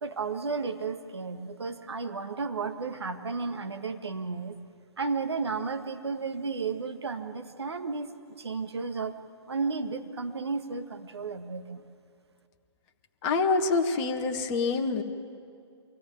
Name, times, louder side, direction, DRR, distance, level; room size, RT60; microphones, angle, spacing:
voice 1, 0.0-4.6 5.0-8.1 8.4-9.2 9.5-11.8, right 4 dB, 65° right, 7 dB, 1.7 m, -33 dB
voice 2, 13.2-15.0, left 4 dB, 25° left, 4 dB, 1.5 m, -26 dB
24.5 x 17.5 x 9.4 m, 2.3 s
figure-of-eight pair, 130°, 15 cm